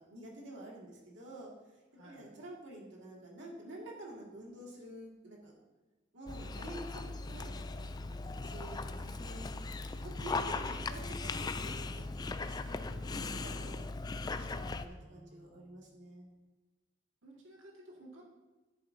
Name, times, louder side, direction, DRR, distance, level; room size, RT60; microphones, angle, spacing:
voice 1, 0.0-1.5 2.0-5.6 6.1-9.6 9.9-13.9 14.3-16.3, right 1 dB, 65° right, -3 dB, 2.0 m, -49 dB
voice 2, 1.9-2.3 15.0-15.9 17.2-18.2, right 1 dB, 90° right, -2 dB, 1.8 m, -56 dB
Dog, 6.3-14.9, left 3 dB, 20° left, 0.3 m, -39 dB
10.5 x 8.9 x 2.7 m, 1.2 s
head